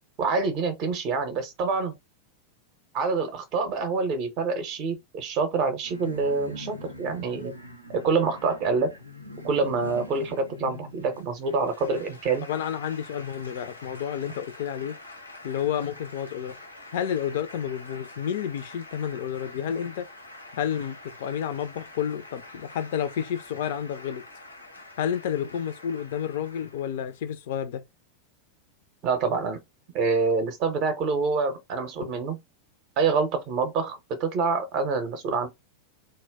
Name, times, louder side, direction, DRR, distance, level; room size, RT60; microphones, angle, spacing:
voice 1, 0.2-1.9 2.9-7.5 7.9-9.0 9.4-12.4 29.0-29.6 29.9-32.4 33.0-35.5, right 4 dB, 40° right, 0.5 m, -26 dB
sound 1, 5.8-11.2, left 1 dB, 85° right, 0.4 m, -42 dB
sound 2, 11.1-27.2, left 2 dB, 85° left, 0.7 m, -46 dB
voice 2, 12.4-15.0 15.4-16.5 16.9-20.1 20.5-24.2 25.0-27.8, left 9 dB, 55° left, 0.3 m, -30 dB
2.1 x 2.1 x 3.3 m
figure-of-eight pair, 90°, 0 cm